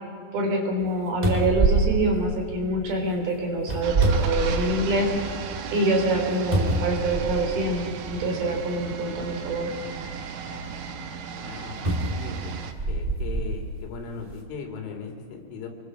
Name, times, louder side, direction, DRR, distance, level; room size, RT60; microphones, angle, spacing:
voice 1, 0.3-5.1 5.7-9.7, right 1 dB, 55° right, 2 dB, 5.2 m, -25 dB
sound 1, 0.8-0.9 1.2-2.9 3.6-5.0 5.5-5.6 6.5-7.6 8.6-8.7 11.8-13.5 14.2-14.3, right 3 dB, 15° right, 1.5 m, -25 dB
sound 2, 3.8-12.7, right 6 dB, 70° right, 1.7 m, -36 dB
voice 2, 11.4-11.8 12.1-12.5 12.9-15.7, left 5 dB, 85° left, 3 dB, 5.6 m, -38 dB
27.5 x 23.0 x 6.3 m, 2.2 s
omnidirectional pair, 5.5 m